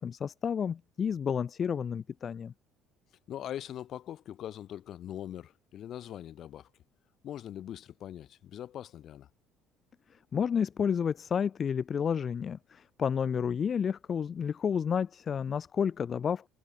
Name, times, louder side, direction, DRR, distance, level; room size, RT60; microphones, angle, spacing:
voice 1, 0.0-2.5 10.3-16.5, left 7 dB, 45° left, 0.8 m, -30 dB
voice 2, 3.3-6.7 7.2-9.3, left 11 dB, 60° left, 6.8 m, -42 dB
supercardioid pair, 75°, 0 cm